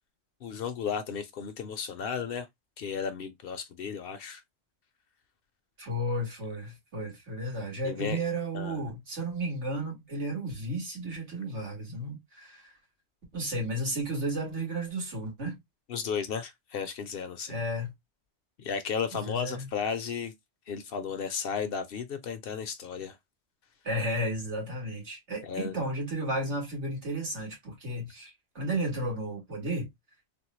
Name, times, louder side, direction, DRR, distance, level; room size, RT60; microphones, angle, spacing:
voice 1, 0.4-2.5 2.8-4.4 7.8-8.2 8.5-8.8 15.9-17.6 18.6-20.3 20.7-23.2 25.4-25.8, left 6 dB, 65° left, 0.7 m, -34 dB
voice 2, 5.8-12.7 13.3-15.6 17.5-17.9 19.1-19.7 23.8-29.9, right 1 dB, 85° right, 1.9 m, -33 dB
3.5 x 2.0 x 3.0 m
omnidirectional pair, 1.2 m